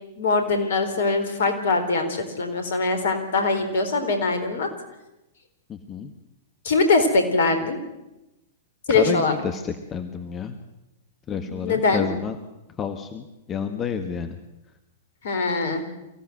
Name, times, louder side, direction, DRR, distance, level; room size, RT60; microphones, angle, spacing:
voice 1, 0.2-4.7 6.6-7.8 8.9-9.3 11.3-12.1 15.2-15.9, left 3 dB, 60° left, 8 dB, 4.1 m, -22 dB
voice 2, 5.7-6.1 8.9-10.6 11.3-12.4 12.8-14.4, left 6 dB, 25° left, 8 dB, 1.5 m, -30 dB
24.5 x 16.0 x 7.8 m, 0.97 s
figure-of-eight pair, 100°, 0 cm